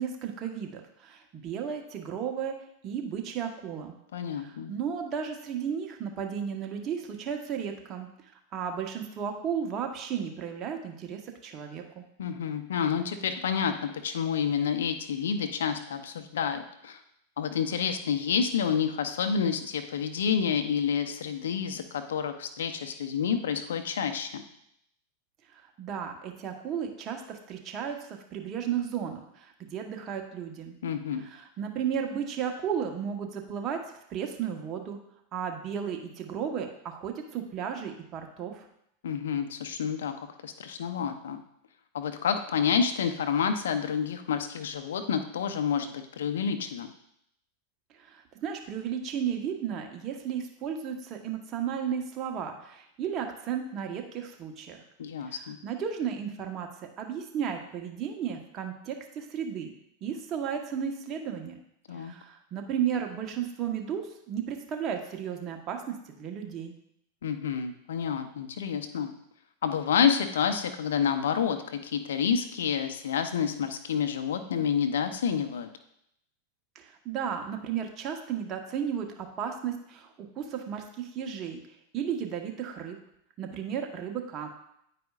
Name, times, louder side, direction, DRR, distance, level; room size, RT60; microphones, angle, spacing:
voice 1, 0.0-2.5 2.8-3.9 4.3-8.1 8.5-12.0 25.6-30.8 31.2-33.8 34.1-35.0 35.3-38.6 48.0-54.8 55.2-56.7 57.0-59.7 60.0-61.6 61.9-65.8 66.1-66.7 76.7-81.6 81.9-83.0 83.4-84.5, right 8 dB, 40° right, 3 dB, 1.1 m, -34 dB
voice 2, 4.1-4.7 12.2-13.7 14.0-17.0 17.4-24.4 30.8-31.3 39.0-40.1 40.4-41.4 41.9-46.9 55.0-55.6 61.9-62.1 67.2-69.1 69.6-75.7, left 7 dB, 80° left, 7 dB, 0.7 m, -29 dB
9.3 x 4.9 x 2.4 m, 0.75 s
hypercardioid pair, 105°, 0 cm